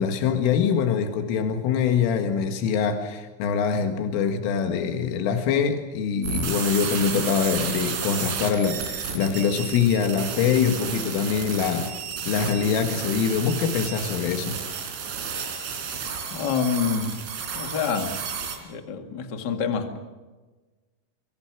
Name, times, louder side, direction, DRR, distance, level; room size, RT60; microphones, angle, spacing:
voice 1, 0.0-11.9 12.3-14.6, left 7 dB, 90° left, 5 dB, 4.3 m, -24 dB
sound 1, 6.2-18.6, right 6 dB, 80° right, 5.9 m, -32 dB
voice 2, 16.3-17.1 17.5-18.2 18.6-20.0, left 6 dB, 60° left, 5 dB, 1.1 m, -27 dB
26.0 x 23.5 x 6.2 m, 1.3 s
omnidirectional pair, 5.6 m